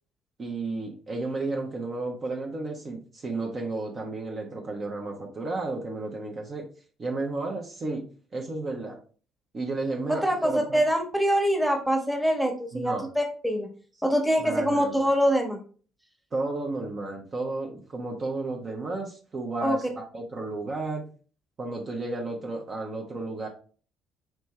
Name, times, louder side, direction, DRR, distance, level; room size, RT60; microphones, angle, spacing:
voice 1, 0.4-6.7 7.0-9.0 9.5-10.8 12.7-13.1 14.4-15.0 16.3-21.1 21.6-23.5, right 3 dB, 35° right, 1 dB, 0.8 m, -33 dB
voice 2, 10.1-13.7 14.0-15.6 19.6-19.8, equal, ahead, 2 dB, 1.2 m, -24 dB
4.5 x 3.2 x 3.1 m, 0.40 s
figure-of-eight pair, 50°, 0 cm